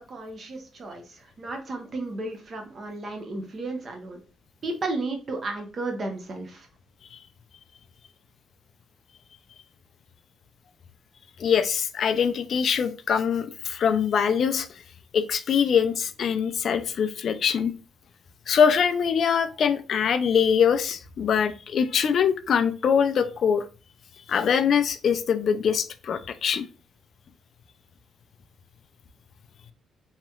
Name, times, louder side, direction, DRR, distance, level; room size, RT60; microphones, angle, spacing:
voice 1, 0.0-4.2 4.6-6.7, right 2 dB, 45° right, 0.9 m, -33 dB
voice 2, 11.4-14.7 15.1-17.7 18.5-23.6 24.3-26.7, left 7 dB, 60° left, 0.4 m, -23 dB
3.0 x 2.8 x 2.3 m
cardioid pair, 90°, 0 cm